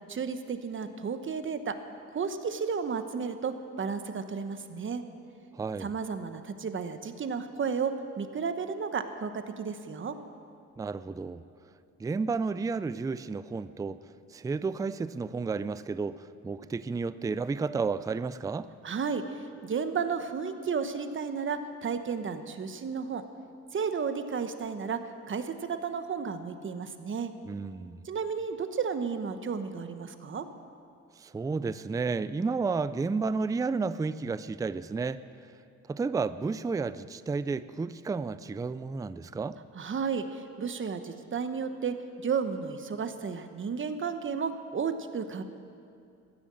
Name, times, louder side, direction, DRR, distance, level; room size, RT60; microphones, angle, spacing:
voice 1, 0.1-1.8 2.1-5.0 5.8-10.2 18.8-23.2 23.7-25.0 25.3-27.3 28.0-30.5 39.7-45.4, right 6 dB, 40° right, 9 dB, 1.1 m, -33 dB
voice 2, 5.5-5.9 10.8-11.4 12.0-14.0 14.3-18.7 27.4-28.0 31.2-35.2 35.9-39.6, right 4 dB, 10° right, 15 dB, 0.4 m, -32 dB
15.0 x 10.0 x 7.7 m, 2.5 s
cardioid pair, 90°, 30 cm